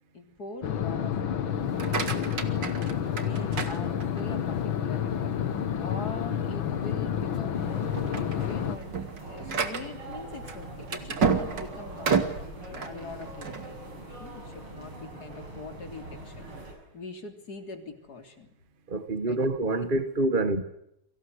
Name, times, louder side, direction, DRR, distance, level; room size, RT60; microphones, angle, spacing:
voice 1, 0.1-1.6 1.9-2.4 3.1-9.0 9.2-12.3 12.7-13.8 14.2-16.4 16.9-18.5 19.3-19.5 19.8-19.9, left 4 dB, 45° left, 3.9 m, -43 dB
sound 1, 0.6-8.8, left 9 dB, 70° left, 2.1 m, -29 dB
sound 2, 1.6-4.4 4.9-5.4 5.8-5.9 6.4-6.5 7.2-7.5 7.8-13.7, right 5 dB, 55° right, 3.1 m, -31 dB
sound 3, 7.5-16.7, right 2 dB, 90° right, 7.7 m, -42 dB
voice 2, 18.9-20.6, right 2 dB, 30° right, 1.4 m, -26 dB
30.0 x 24.5 x 8.0 m
omnidirectional pair, 2.3 m